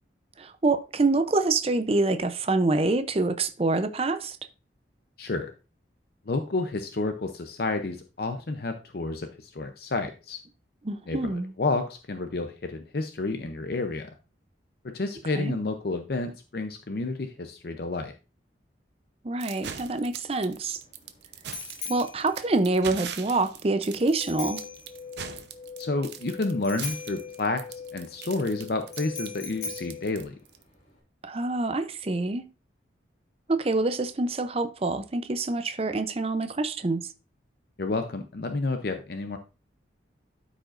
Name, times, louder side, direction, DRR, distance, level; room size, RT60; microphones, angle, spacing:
voice 1, 0.4-4.4 10.8-11.5 15.3-15.5 19.2-20.8 21.9-24.6 31.2-32.4 33.5-37.0, right 2 dB, 30° right, 0.5 m, -26 dB
voice 2, 5.2-5.5 6.3-10.4 11.1-11.2 11.6-14.1 14.8-18.1 25.8-30.3 37.8-39.4, left 3 dB, 55° left, 0.6 m, -30 dB
sound 1, 19.4-30.6, right 8 dB, 65° right, 0.8 m, -41 dB
Bicycle bell, 19.9-31.0, left 4 dB, 40° left, 2.3 m, -42 dB
sound 2, 24.2-30.2, left 6 dB, 10° left, 2.9 m, -43 dB
12.5 x 5.0 x 2.5 m
head